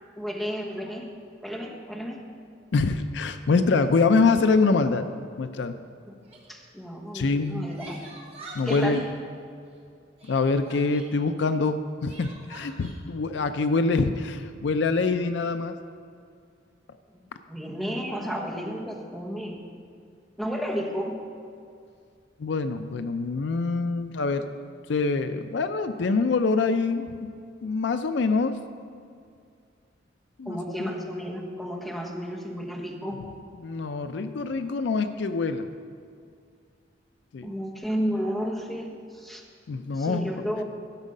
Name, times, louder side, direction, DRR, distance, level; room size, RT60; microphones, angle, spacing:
voice 1, 0.2-1.0 1.4-2.2 6.1-6.2 6.5-8.0 8.6-9.0 17.1-17.2 17.5-19.6 20.4-21.2 30.4-33.2 37.4-39.4 39.9-40.6, equal, ahead, -3 dB, 1.1 m, -32 dB
voice 2, 2.7-5.0 5.4-5.8 7.1-7.7 8.5-9.0 10.2-15.8 22.4-24.5 24.9-27.3 27.6-28.6 30.4-30.6 33.6-35.7 37.3-37.5 39.7-40.5, left 4 dB, 70° left, 10 dB, 0.4 m, -25 dB
Crying sobbing, 6.2-6.5 7.4-9.1 10.2-11.1 12.0-12.9, right 2 dB, 30° right, 1.4 m, -45 dB
12.0 x 6.2 x 5.4 m, 2.3 s
head